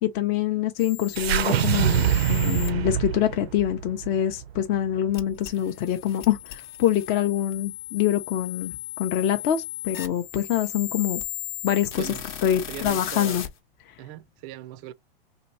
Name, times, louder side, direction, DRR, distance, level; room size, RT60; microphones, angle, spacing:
voice 1, 0.0-11.2 11.6-12.1 12.4-13.4 13.9-14.0, left 11 dB, 35° left, 0.6 m, -25 dB
sound 1, 0.8-2.7 5.1-13.5, left 12 dB, 50° left, 0.9 m, -37 dB
sound 2, 1.2-5.5, right 10 dB, 90° right, 0.5 m, -25 dB
voice 2, 12.7-13.4 14.0-14.9, right 13 dB, 35° right, 0.4 m, -39 dB
2.9 x 2.6 x 4.1 m
hypercardioid pair, 120°, 30 cm